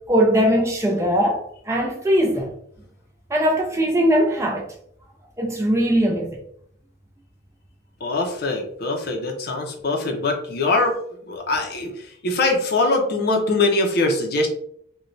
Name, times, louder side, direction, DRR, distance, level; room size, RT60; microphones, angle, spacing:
voice 1, 0.1-2.5 3.3-4.7 5.4-6.4, equal, 15° right, 0.4 m, -20 dB
voice 2, 8.0-11.0 11.3-14.5, left 2 dB, 50° left, 0.5 m, -22 dB
3.0 x 2.2 x 2.5 m
head